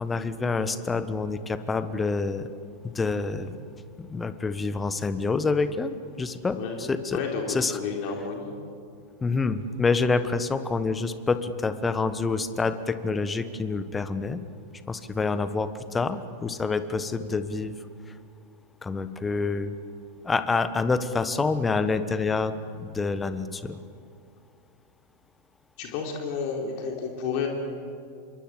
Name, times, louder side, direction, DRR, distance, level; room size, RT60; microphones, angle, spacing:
voice 1, 0.0-2.5 2.8-3.5 4.0-7.2 7.5-7.8 9.2-14.4 14.9-17.7 18.8-19.7 20.2-23.8, left 4 dB, 15° left, 12 dB, 1.3 m, -27 dB
voice 2, 6.5-8.6 25.8-27.5, left 5 dB, 45° left, 1 dB, 3.6 m, -31 dB
27.0 x 22.5 x 7.6 m, 2.3 s
figure-of-eight pair, 90°, 0 cm